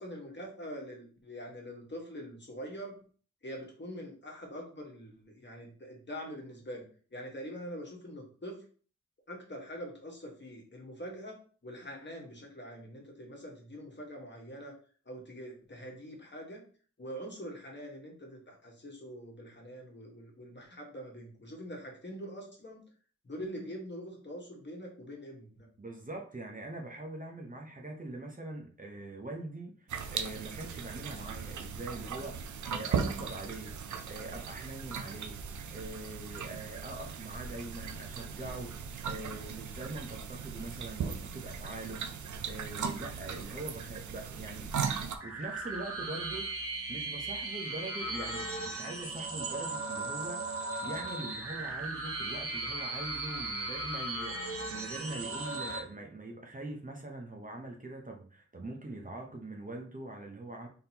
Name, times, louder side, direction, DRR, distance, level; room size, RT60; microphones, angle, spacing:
voice 1, 0.0-3.0 3.4-6.8 7.1-8.6 9.3-14.7 15.1-16.6 17.0-22.8 23.2-25.7, equal, 40° left, -1 dB, 1.5 m, -44 dB
voice 2, 25.8-35.4 35.7-44.7 45.2-60.7, right 2 dB, 30° right, 1 dB, 0.9 m, -43 dB
sound 1, 29.9-45.2, right 6 dB, 80° right, 0.5 m, -38 dB
sound 2, 45.1-55.8, right 2 dB, 50° right, 1.0 m, -37 dB
3.9 x 3.6 x 2.8 m, 0.42 s
cardioid pair, 65°, 30 cm